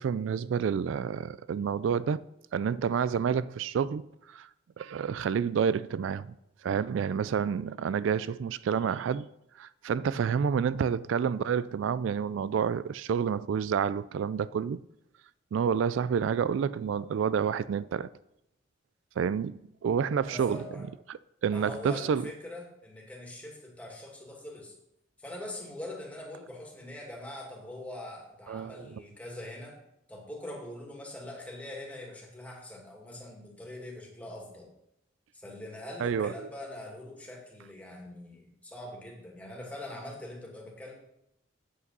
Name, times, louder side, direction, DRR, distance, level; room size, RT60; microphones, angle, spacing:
voice 1, 0.0-2.2 2.5-4.5 4.8-6.3 6.6-9.3 9.6-14.8 15.5-18.1 19.2-20.6 21.1-22.3 28.5-29.0 36.0-36.5, right 7 dB, 75° right, 0.3 m, -29 dB
voice 2, 20.2-20.9 21.5-24.7 25.2-29.8 30.1-34.7 35.3-40.9, left 1 dB, 5° left, 2.1 m, -43 dB
8.4 x 8.3 x 5.4 m
head